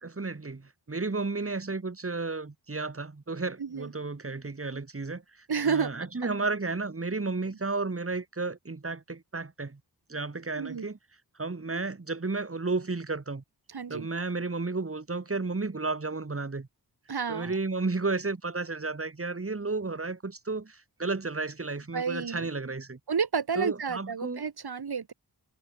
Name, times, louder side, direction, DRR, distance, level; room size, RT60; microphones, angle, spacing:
voice 1, 0.0-9.8 10.1-11.0 11.4-13.4 13.9-16.7 17.3-23.0 23.6-24.4, right 3 dB, 35° right, 2.5 m, -33 dB
voice 2, 5.5-5.9 10.6-10.9 13.7-14.1 17.1-17.5 21.9-22.5 23.1-25.1, right 6 dB, 70° right, 2.6 m, -30 dB
cardioid pair, 50°, 41 cm